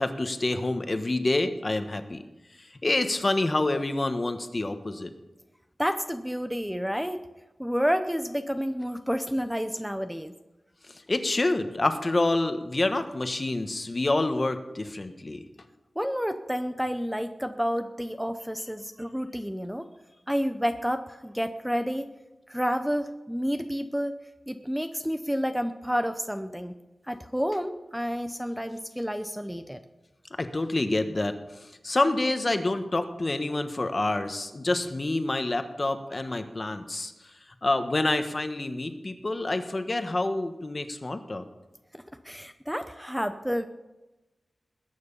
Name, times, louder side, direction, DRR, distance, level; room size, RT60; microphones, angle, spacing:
voice 1, 0.0-2.2 2.6-5.1 10.9-15.4 30.4-37.1 37.6-41.4, left 2 dB, 35° left, 8 dB, 1.3 m, -27 dB
voice 2, 5.8-7.2 7.6-10.3 16.0-19.9 20.3-22.1 22.5-24.2 24.5-26.7 27.1-29.8 42.2-43.6, equal, 5° right, 8 dB, 0.7 m, -30 dB
20.5 x 9.4 x 5.6 m, 1.1 s
wide cardioid pair, 115°, 0 cm